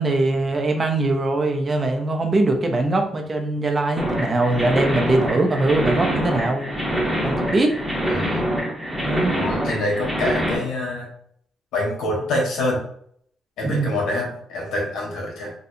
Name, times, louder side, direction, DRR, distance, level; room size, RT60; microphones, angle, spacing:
voice 1, 0.0-6.7 7.2-7.8 9.0-9.4 13.6-13.9, right 2 dB, 35° right, 4 dB, 0.6 m, -21 dB
sound 1, 4.0-10.6, equal, 5° right, 1.0 m, -24 dB
voice 2, 8.0-8.5 9.3-11.1 11.7-12.8 13.6-15.5, left 1 dB, 80° left, -2 dB, 1.3 m, -26 dB
4.1 x 2.3 x 2.7 m, 0.65 s
cardioid pair, 90°, 0 cm